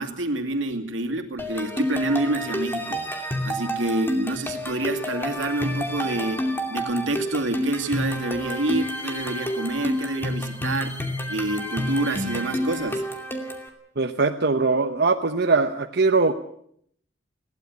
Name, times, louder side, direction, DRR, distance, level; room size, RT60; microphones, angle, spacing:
voice 1, 0.0-6.4 6.7-11.0 11.3-13.0, right 2 dB, 90° right, 5 dB, 2.5 m, -27 dB
sound 1, 1.4-13.7, equal, 10° left, 2.7 m, -29 dB
voice 2, 14.0-16.3, right 3 dB, 60° right, 5 dB, 1.0 m, -21 dB
21.5 x 16.5 x 8.2 m, 0.67 s
head